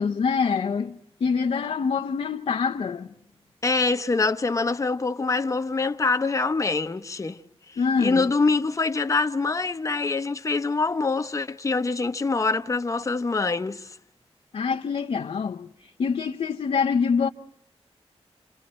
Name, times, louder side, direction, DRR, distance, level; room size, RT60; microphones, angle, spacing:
voice 1, 0.0-3.1 7.8-8.3 14.5-15.7 16.0-17.3, left 5 dB, 65° left, 0.8 m, -25 dB
voice 2, 3.6-7.4 7.7-14.0, left 3 dB, 30° left, 0.9 m, -25 dB
29.0 x 27.0 x 4.4 m
wide cardioid pair, 150°, 11 cm